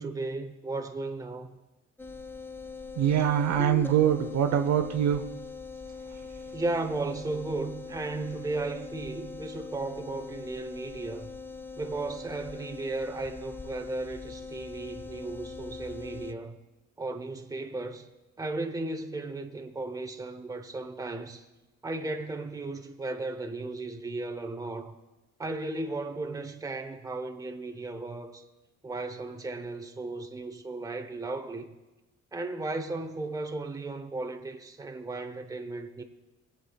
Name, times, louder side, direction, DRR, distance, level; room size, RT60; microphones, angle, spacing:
voice 1, 0.0-1.5 6.5-11.3 11.8-16.6 17.0-18.1 18.4-21.5 21.8-25.0 25.4-28.4 28.8-31.7 32.3-36.0, right 2 dB, 10° right, 0.8 m, -35 dB
sound 1, 2.0-16.3, left 4 dB, 10° left, 0.3 m, -42 dB
voice 2, 3.0-5.2, right 9 dB, 65° right, 0.8 m, -24 dB
21.0 x 8.1 x 2.3 m
cardioid pair, 90°, 30 cm